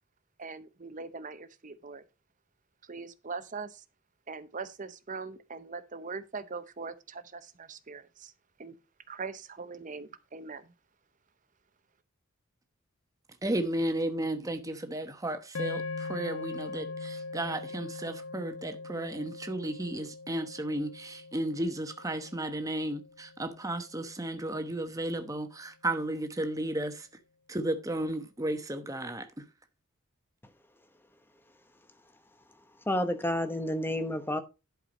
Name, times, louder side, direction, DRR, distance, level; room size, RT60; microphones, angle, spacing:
voice 1, 0.4-2.0 2.8-3.8 4.3-8.3 8.6-8.8 9.1-10.7, right 4 dB, 35° right, 0.7 m, -41 dB
voice 2, 13.4-14.6 14.9-15.7 16.1-16.3 16.8-16.9 17.4-18.4 18.9-19.1 19.5-20.9 21.3-21.7 22.0-23.0 23.6-25.4 25.8-26.9 27.7-28.6 28.9-29.0, right 1 dB, 15° right, 1.0 m, -32 dB
sound 1, 15.5-23.9, left 3 dB, 80° left, 0.9 m, -41 dB
voice 3, 32.9-34.4, left 1 dB, 10° left, 0.9 m, -30 dB
11.0 x 4.7 x 5.1 m
head